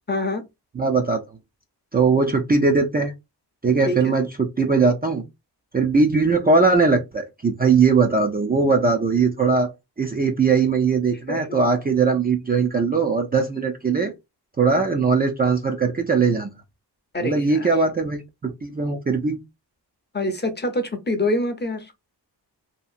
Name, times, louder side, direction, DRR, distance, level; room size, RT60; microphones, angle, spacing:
voice 1, 0.1-0.4 3.9-4.1 11.3-11.5 17.1-17.7 20.1-21.9, left 1 dB, 25° left, 0.7 m, -25 dB
voice 2, 0.8-1.2 1.9-3.1 3.6-5.2 5.7-9.7 10.0-14.1 14.6-16.5 17.2-19.4, right 4 dB, 25° right, 0.4 m, -20 dB
2.8 x 2.3 x 2.5 m
cardioid pair, 80°, 42 cm